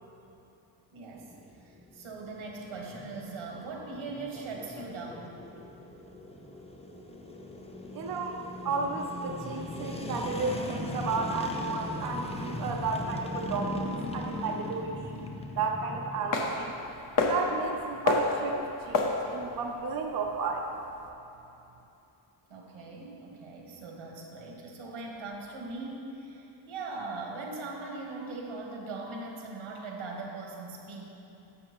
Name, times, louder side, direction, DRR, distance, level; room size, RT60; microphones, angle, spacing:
voice 1, 0.9-5.4 22.5-31.1, right 3 dB, 85° right, -1 dB, 1.5 m, -40 dB
sound 1, 1.1-16.4, left 2 dB, 15° left, 0.4 m, -39 dB
voice 2, 7.9-15.2 15.6-16.7 17.2-20.7, right 4 dB, 50° right, 1 dB, 0.6 m, -33 dB
sound 2, 16.3-21.1, left 3 dB, 45° left, 0.7 m, -31 dB
11.0 x 6.9 x 3.0 m, 3.0 s
wide cardioid pair, 160°, 47 cm